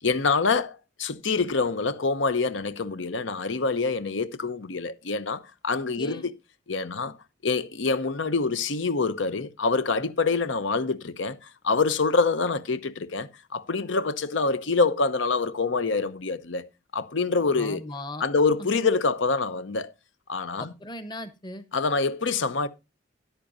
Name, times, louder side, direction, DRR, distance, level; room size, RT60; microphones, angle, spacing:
voice 1, 0.0-6.3 6.7-7.2 7.4-17.8 18.2-19.9 20.3-20.7 21.7-22.7, left 4 dB, 85° left, 0.8 m, -26 dB
voice 2, 6.0-6.3 17.5-18.3 18.6-18.7 20.6-21.7, left 1 dB, 25° left, 0.9 m, -38 dB
13.5 x 10.0 x 2.6 m
head